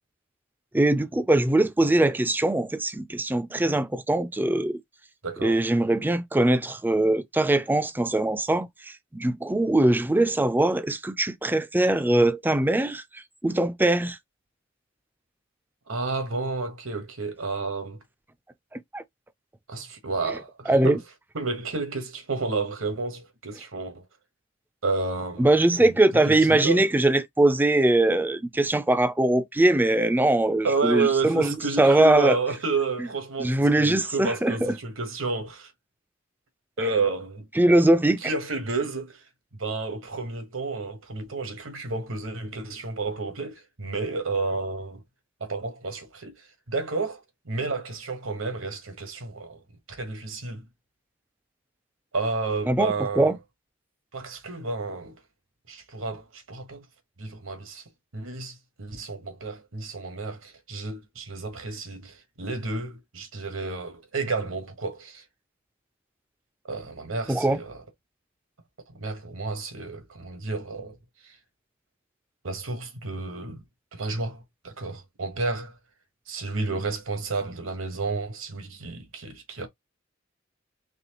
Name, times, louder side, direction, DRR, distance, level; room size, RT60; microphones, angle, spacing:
voice 1, 0.7-4.8 5.4-14.2 18.7-19.0 20.7-21.0 25.4-32.4 33.4-34.7 37.6-38.2 52.7-53.4 67.3-67.6, right 1 dB, 10° right, 0.4 m, -22 dB
voice 2, 5.2-5.6 15.9-18.0 19.7-21.0 21.3-24.1 24.8-25.5 25.8-26.9 30.6-35.7 36.8-37.5 38.2-39.2 39.5-45.0 45.4-49.6 49.9-50.6 52.1-53.3 54.1-55.1 55.7-56.9 57.2-57.8 58.1-65.2 66.6-67.8 69.0-71.0 71.2-71.4 72.4-73.6 73.9-75.8 76.3-79.7, right 3 dB, 75° right, 1.3 m, -31 dB
4.1 x 3.2 x 2.9 m
head